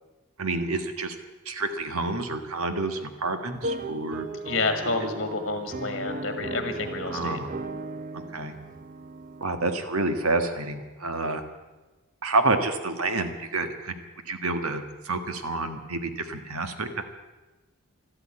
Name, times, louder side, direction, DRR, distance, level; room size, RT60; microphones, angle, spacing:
voice 1, 0.4-1.1 1.4-4.3 7.1-7.5 8.3-8.5 9.4-11.4 12.2-13.9 14.3-17.0, right 2 dB, 80° right, 8 dB, 1.5 m, -28 dB
sound 1, 3.5-9.4, right 2 dB, 35° right, 0.6 m, -36 dB
voice 2, 4.4-7.4, left 3 dB, 50° left, 7 dB, 1.6 m, -29 dB
13.0 x 12.5 x 8.8 m, 1.1 s
head